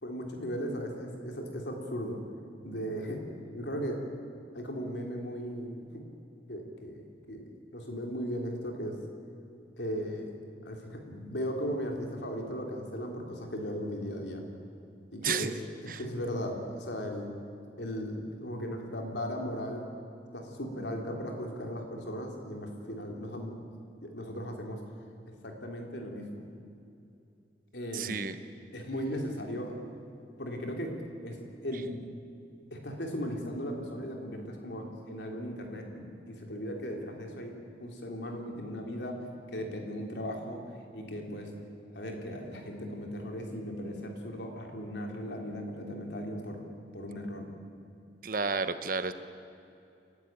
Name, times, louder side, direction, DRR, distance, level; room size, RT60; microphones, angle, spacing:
voice 1, 0.0-2.2 2.6-3.2 3.5-4.0 4.5-6.0 6.5-7.5 7.7-9.0 9.8-10.4 10.7-14.4 15.1-15.5 15.8-17.3 17.8-19.9 20.3-23.6 24.0-24.8 25.4-26.5 27.7-28.2 28.7-29.8 30.4-32.0 32.7-40.6 40.9-41.5 41.9-46.6 46.9-47.5, equal, 75° left, 2 dB, 3.3 m, -37 dB
voice 2, 15.2-15.5 15.9-16.0 27.9-28.3 48.2-49.1, right 5 dB, 50° right, 11 dB, 1.0 m, -31 dB
29.5 x 12.0 x 8.9 m, 2.6 s
head